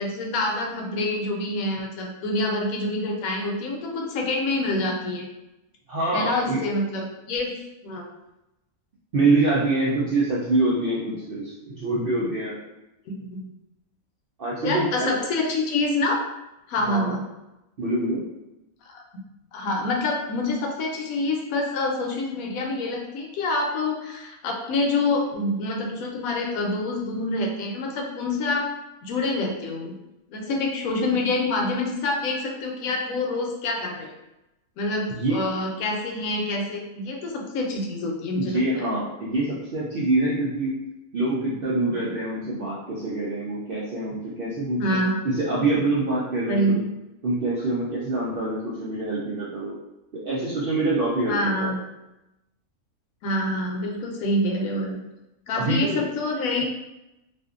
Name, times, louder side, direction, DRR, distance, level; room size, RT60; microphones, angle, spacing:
voice 1, 0.0-5.3 6.1-8.1 13.1-13.4 14.6-16.2 16.7-17.2 18.8-19.0 19.5-28.7 29.0-30.0 30.3-34.1 34.8-38.8 44.8-45.2 46.5-46.8 51.3-51.8 53.2-55.0 55.5-56.7, left 2 dB, 75° left, 0 dB, 1.0 m, -26 dB
voice 2, 5.9-6.6 9.1-12.6 14.4-15.1 16.9-17.1 17.8-18.2 35.1-35.4 38.3-40.7 41.1-46.8 47.2-49.7 50.1-51.7 55.5-56.0, right 2 dB, 65° right, -7 dB, 0.5 m, -25 dB
2.5 x 2.5 x 2.4 m, 0.93 s
omnidirectional pair, 1.5 m